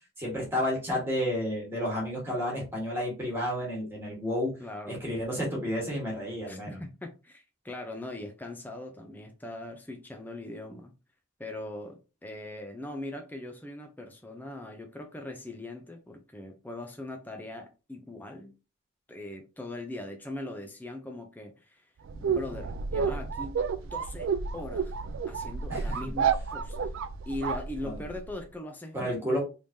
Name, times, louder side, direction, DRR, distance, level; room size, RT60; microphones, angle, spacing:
voice 1, 0.2-4.5 4.9-6.8 25.7-26.1 27.8-28.0 28.9-29.4, equal, 10° right, 1.6 m, -31 dB
voice 2, 4.6-5.1 6.5-10.9 11.4-18.5 19.1-21.8 22.2-23.6 23.8-24.9 25.3-26.9 27.3-29.2, left 2 dB, 10° left, 0.5 m, -40 dB
sound 1, 22.1-28.3, right 6 dB, 75° right, 0.3 m, -31 dB
3.5 x 3.2 x 2.6 m
head